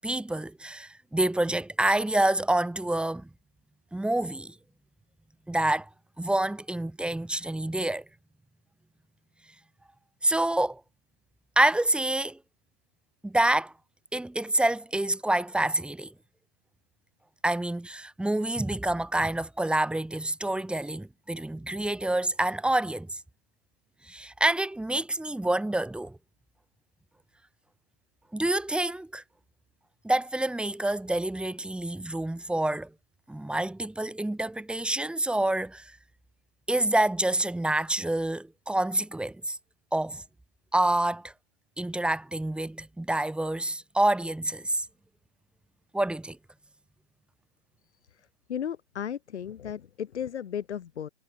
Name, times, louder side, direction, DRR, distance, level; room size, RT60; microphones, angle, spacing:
voice 1, 0.0-3.3 3.9-4.5 5.5-5.9 6.2-8.0 10.2-10.8 11.6-12.4 13.2-13.7 14.1-16.1 17.4-23.2 24.1-26.2 28.3-29.2 30.0-32.9 33.3-35.9 36.7-39.6 39.9-40.2 40.7-41.3 41.8-44.9 45.9-46.4, right 1 dB, 5° right, 7.0 m, -27 dB
voice 2, 48.5-51.1, left 9 dB, 70° left, 5.0 m, -35 dB
hypercardioid pair, 135°, 36 cm